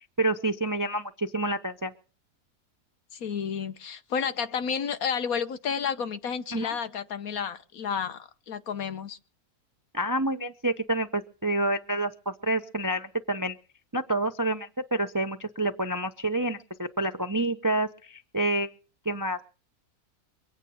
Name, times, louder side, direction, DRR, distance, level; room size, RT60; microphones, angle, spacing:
voice 1, 0.2-1.9 6.5-6.7 9.9-13.6 13.9-18.7 19.0-19.4, right 1 dB, 20° right, 0.5 m, -28 dB
voice 2, 3.1-9.2, left 7 dB, 65° left, 1.4 m, -31 dB
23.5 x 9.0 x 5.7 m
omnidirectional pair, 1.6 m